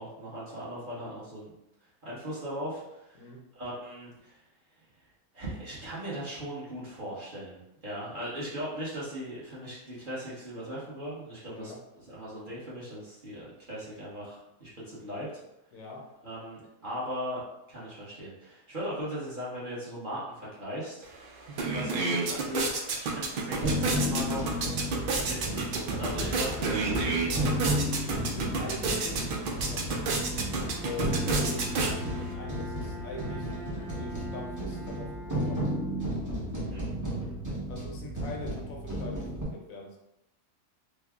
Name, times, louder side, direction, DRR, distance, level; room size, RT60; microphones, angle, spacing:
voice 1, 0.0-1.5 2.0-3.3 3.5-4.4 5.3-11.7 12.1-15.4 16.2-17.4 17.7-21.1 21.7-24.6 25.2-27.5 36.7-36.8, equal, 40° right, -8 dB, 1.0 m, -38 dB
voice 2, 15.7-16.1 28.2-30.2 30.8-33.5 34.0-35.6 37.7-40.0, left 2 dB, 70° left, 0 dB, 1.0 m, -42 dB
sound 1, 21.0-21.1 21.4-32.3, right 3 dB, 85° right, 0.4 m, -31 dB
sound 2, 23.6-39.4, equal, 15° right, 0.6 m, -33 dB
Bowed string instrument, 30.5-36.5, right 1 dB, 70° right, 1.0 m, -44 dB
3.4 x 2.0 x 3.4 m, 0.89 s
omnidirectional pair, 1.5 m